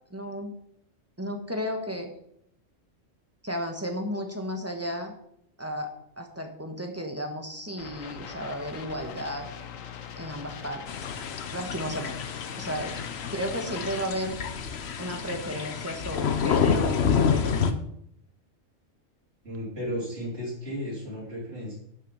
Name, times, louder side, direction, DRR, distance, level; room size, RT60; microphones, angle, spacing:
voice 1, 0.1-0.5 1.2-2.1 3.4-5.1 5.6-9.5 10.1-10.8 11.5-12.2 12.6-12.9 13.3-14.4 15.0-17.5, equal, 10° right, 4 dB, 1.4 m, -33 dB
sound 1, 7.8-14.1, left 7 dB, 85° left, 1.3 m, -41 dB
sound 2, 10.9-17.7, left 6 dB, 60° left, 1.0 m, -28 dB
voice 2, 19.4-21.7, equal, 50° right, -6 dB, 3.9 m, -34 dB
11.5 x 6.3 x 5.6 m, 0.74 s
omnidirectional pair, 1.3 m